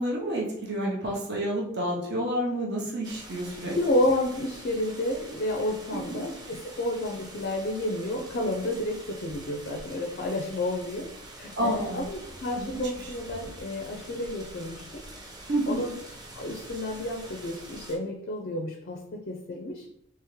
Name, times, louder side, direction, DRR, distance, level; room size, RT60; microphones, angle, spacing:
voice 1, 0.0-3.8 6.1-6.2 11.6-12.0 12.6-12.7 13.0-13.1 15.5-15.8, right 1 dB, 50° right, -3 dB, 0.8 m, -29 dB
sound 1, 3.0-18.0, right 1 dB, 20° right, 0.5 m, -45 dB
voice 2, 3.7-11.1 11.4-15.0 15.7-16.0 16.3-19.9, left 1 dB, 45° left, 2 dB, 0.4 m, -30 dB
3.5 x 2.9 x 3.1 m, 0.79 s
head